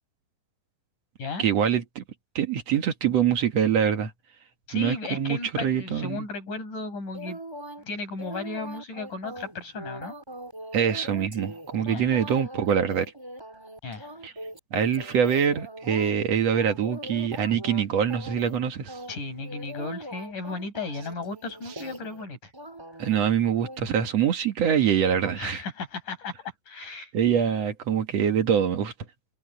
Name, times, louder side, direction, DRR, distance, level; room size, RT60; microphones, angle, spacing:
voice 1, 1.4-2.0 2.4-4.1 4.7-6.2 10.7-13.1 14.2-14.3 14.7-19.0 23.0-25.6 27.1-28.9, right 8 dB, 55° right, 2.3 m, -24 dB
voice 2, 4.7-7.4 7.8-10.1 11.8-12.2 13.8-14.1 19.1-22.5 25.4-27.1, left 3 dB, 60° left, 8.4 m, -35 dB
sound 1, 7.1-7.8 8.2-16.1 16.5-17.8 18.1-18.6 18.9-22.2 22.5-23.2 23.6-23.8, equal, 5° right, 3.2 m, -41 dB
omnidirectional pair, 4.2 m